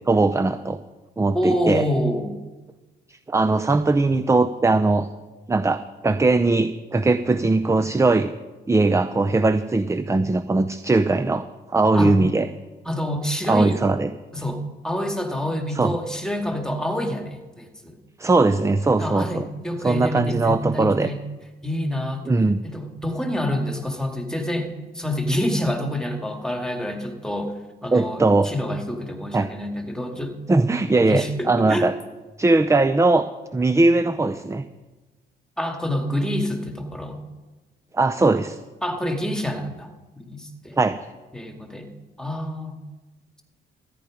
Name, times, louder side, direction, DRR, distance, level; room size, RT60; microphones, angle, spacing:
voice 1, 0.1-0.8 1.2-1.8 3.3-5.1 5.5-8.3 8.7-12.5 13.5-14.1 15.8-15.9 18.2-19.4 19.8-21.1 22.3-22.6 27.9-28.5 29.3-29.5 30.5-31.9 32.4-33.2 33.5-34.6 37.9-38.6 40.8-41.0, right 3 dB, 15° right, 12 dB, 0.6 m, -20 dB
voice 2, 1.3-2.3 11.9-12.1 12.8-13.8 14.3-18.0 19.0-21.2 21.6-22.3 22.6-27.5 27.8-30.3 31.1-31.9 35.6-37.2 38.8-39.9 40.2-40.8 41.3-41.9 42.2-42.8, equal, 5° left, 4 dB, 2.1 m, -27 dB
14.0 x 10.5 x 5.0 m, 1.2 s
cardioid pair, 90°, 20 cm